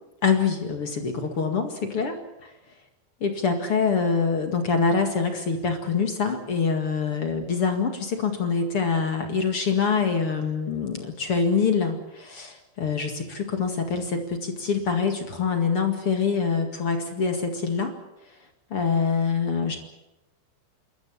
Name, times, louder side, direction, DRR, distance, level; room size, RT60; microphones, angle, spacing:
voice 1, 0.2-2.2 3.2-17.9 18.7-19.8, left 5 dB, 45° left, 5 dB, 2.2 m, -25 dB
28.5 x 13.5 x 9.7 m, 0.95 s
omnidirectional pair, 4.8 m